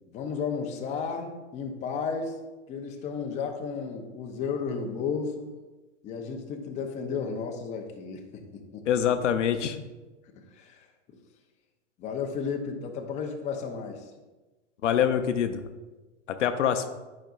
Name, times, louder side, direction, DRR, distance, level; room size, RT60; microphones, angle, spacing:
voice 1, 0.1-2.4 2.7-5.5 6.0-9.0 10.3-10.9 12.0-14.0, left 5 dB, 20° left, 3 dB, 0.6 m, -33 dB
voice 2, 8.9-9.8 14.8-15.7 16.4-16.9, left 9 dB, 80° left, 8 dB, 0.7 m, -25 dB
9.0 x 5.1 x 2.4 m, 1.2 s
hypercardioid pair, 130°, 36 cm